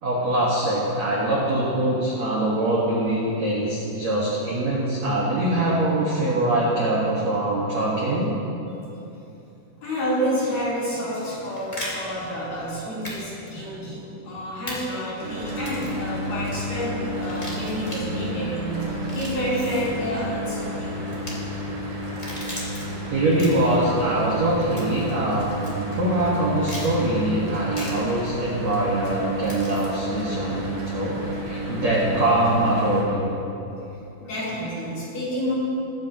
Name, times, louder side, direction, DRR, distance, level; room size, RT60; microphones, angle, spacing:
voice 1, 0.0-8.3 23.1-33.3, right 1 dB, 75° right, -6 dB, 1.6 m, -23 dB
voice 2, 9.8-21.0 33.7-35.5, equal, 45° left, -9 dB, 4.7 m, -29 dB
sound 1, 11.3-11.9 13.0-13.2 13.5-13.6 14.7-14.8 15.5-16.0 17.2-18.0 18.9-19.9 21.1-21.3 22.0-22.8 23.3-23.7 24.8-25.1 25.6-25.7 26.6-26.9 27.7-27.9 29.4-29.9, left 1 dB, 30° left, 0.6 m, -37 dB
Mechanical fan, 15.2-33.0, right 1 dB, 60° right, 1.2 m, -31 dB
21.5 x 9.7 x 2.9 m, 2.9 s
omnidirectional pair, 5.7 m